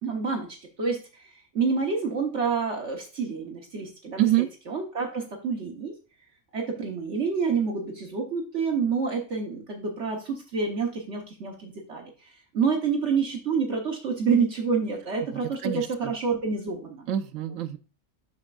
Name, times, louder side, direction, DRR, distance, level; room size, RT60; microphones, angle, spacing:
voice 1, 0.0-0.5 0.8-1.0 1.5-4.3 4.7-5.9 6.5-12.1 12.5-17.1, right 5 dB, 60° right, 1 dB, 1.4 m, -28 dB
voice 2, 4.2-4.5 15.4-16.1 17.1-17.8, right 14 dB, 80° right, 9 dB, 1.0 m, -26 dB
12.0 x 4.4 x 2.4 m, 0.34 s
omnidirectional pair, 1.4 m